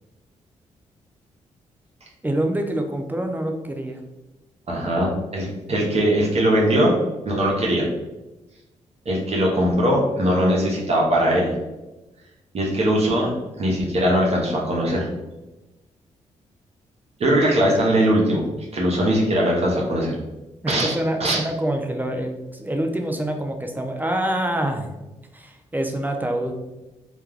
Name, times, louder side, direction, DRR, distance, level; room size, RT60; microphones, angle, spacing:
voice 1, 2.2-4.0 20.6-24.9 25.3-26.5, right 1 dB, 15° right, 4 dB, 0.5 m, -26 dB
voice 2, 4.7-7.0 7.2-7.9 9.1-11.5 12.5-13.3 13.6-15.1 17.2-18.4 18.7-20.1 20.7-21.4, equal, 50° right, -2 dB, 0.7 m, -20 dB
2.3 x 2.2 x 3.2 m, 1.0 s
supercardioid pair, 55°, 14 cm